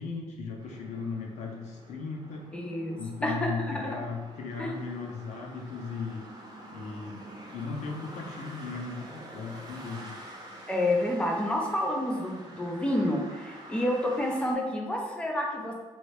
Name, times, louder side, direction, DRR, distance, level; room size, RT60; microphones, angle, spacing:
voice 1, 0.0-2.5 3.0-6.2 6.7-10.2, left 4 dB, 85° left, 0 dB, 0.6 m, -37 dB
sound 1, 0.6-14.5, right 1 dB, 35° right, 0.5 m, -47 dB
voice 2, 2.5-4.0 4.6-4.7 10.7-15.7, left 1 dB, 10° left, -1 dB, 0.4 m, -29 dB
3.0 x 2.6 x 3.2 m, 1.2 s
wide cardioid pair, 165°, 11 cm